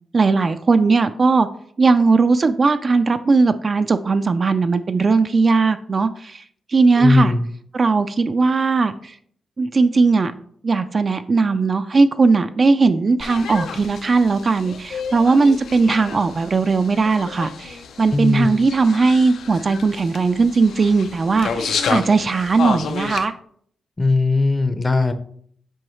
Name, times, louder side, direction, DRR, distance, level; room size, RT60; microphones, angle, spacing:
voice 1, 0.1-1.5 1.8-6.4 6.7-7.3 7.7-9.1 9.6-10.3 10.6-23.3, right 4 dB, 35° right, 9 dB, 0.3 m, -18 dB
voice 2, 7.0-7.5 18.1-18.6 24.0-25.1, left 3 dB, 20° left, 9 dB, 0.6 m, -18 dB
sound 1, 13.2-23.3, left 5 dB, 80° left, 0.6 m, -30 dB
7.7 x 4.6 x 3.1 m, 0.62 s
wide cardioid pair, 130°, 0 cm